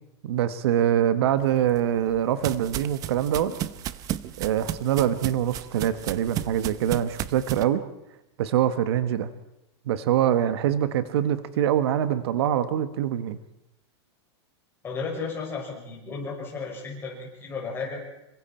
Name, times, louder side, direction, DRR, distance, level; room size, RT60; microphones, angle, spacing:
voice 1, 0.2-3.5 4.4-7.8 8.4-9.3 9.9-13.4, right 10 dB, 70° right, 12 dB, 1.4 m, -24 dB
sound 1, 1.5-7.6, right 12 dB, 25° right, 0.7 m, -34 dB
voice 2, 14.8-18.0, left 4 dB, 15° left, -2 dB, 6.2 m, -34 dB
26.5 x 25.0 x 4.4 m, 0.88 s
supercardioid pair, 165°, 14 cm